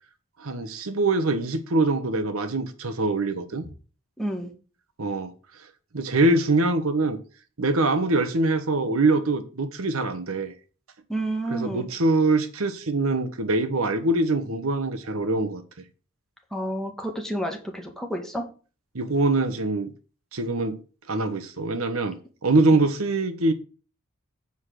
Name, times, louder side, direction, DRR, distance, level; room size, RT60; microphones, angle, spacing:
voice 1, 0.4-3.6 5.0-5.3 5.9-7.2 7.6-10.5 11.5-15.6 18.9-19.9 20.3-20.8 21.1-22.2 22.4-23.5, right 2 dB, 80° right, 1.1 m, -23 dB
voice 2, 4.2-4.5 11.1-11.9 16.5-18.5, right 1 dB, ahead, 1.8 m, -30 dB
8.2 x 4.9 x 6.3 m
head